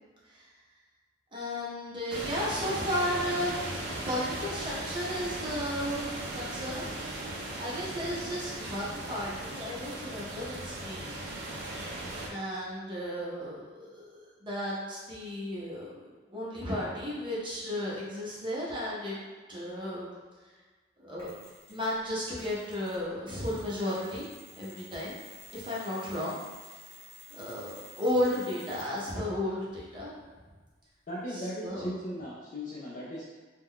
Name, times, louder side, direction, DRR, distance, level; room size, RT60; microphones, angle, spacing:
voice 1, 1.3-6.9 7.3-11.1 12.3-19.2 19.5-20.1 21.0-21.3 21.7-24.3 24.6-25.2 25.5-26.7 27.3-30.1 31.3-31.9, left 1 dB, 25° right, -7 dB, 0.7 m, -34 dB
sound 1, 2.1-12.3, right 1 dB, 65° right, 0.5 m, -38 dB
Mechanisms, 21.2-22.0 22.4-29.2, left 2 dB, 15° left, 0.8 m, -52 dB
voice 2, 31.1-33.2, equal, 45° left, -7 dB, 0.4 m, -37 dB
2.3 x 2.2 x 3.6 m, 1.4 s
head